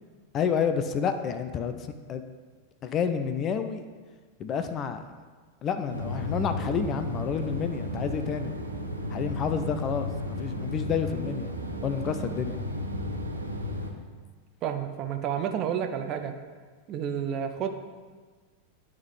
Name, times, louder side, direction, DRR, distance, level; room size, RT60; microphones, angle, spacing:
voice 1, 0.3-2.2 2.8-3.9 4.4-5.0 5.6-8.5 9.1-10.1 10.4-11.5 11.8-12.6, left 7 dB, 30° left, 9 dB, 0.4 m, -29 dB
sound 1, 5.9-13.9, left 1 dB, 85° right, 0.7 m, -33 dB
voice 2, 14.6-16.3 16.9-17.7, right 8 dB, 35° right, 6 dB, 0.5 m, -30 dB
10.5 x 3.6 x 3.2 m, 1.5 s
figure-of-eight pair, 90°, 0 cm